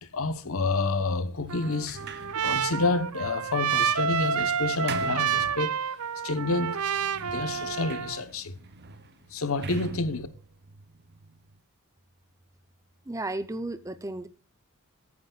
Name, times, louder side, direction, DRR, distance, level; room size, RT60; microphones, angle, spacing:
voice 1, 0.0-2.0 2.4-5.8 6.2-6.8 7.2-8.6 9.3-10.3, left 3 dB, 70° left, 1.0 m, -29 dB
Trumpet, 1.5-8.2, right 7 dB, 85° right, 0.6 m, -29 dB
Sliding door, 1.6-6.1 6.7-11.6, right 4 dB, 50° right, 0.8 m, -42 dB
voice 2, 13.1-14.3, right 2 dB, 15° right, 0.6 m, -33 dB
14.0 x 9.6 x 2.4 m
head